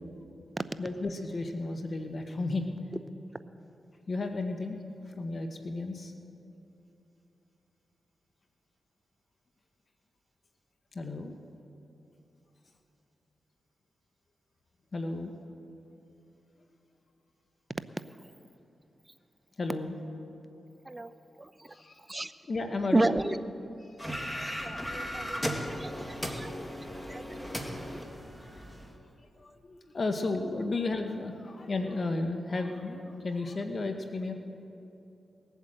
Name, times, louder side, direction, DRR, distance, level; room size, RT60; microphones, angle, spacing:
voice 1, 0.8-2.7 4.1-6.1 10.9-11.3 14.9-15.3 19.6-19.9 21.7-22.2 22.5-23.2 23.8-24.0 25.2-25.4 26.6-26.7 28.4-28.7 29.4-34.3, left 3 dB, 55° left, 5 dB, 1.1 m, -33 dB
voice 2, 22.9-23.4 24.3-26.5 27.1-28.0, right 2 dB, 25° right, 12 dB, 0.7 m, -32 dB
sound 1, 24.0-28.9, equal, 5° left, 1.9 m, -36 dB
19.5 x 8.3 x 7.7 m, 2.9 s
cardioid pair, 55°, 0 cm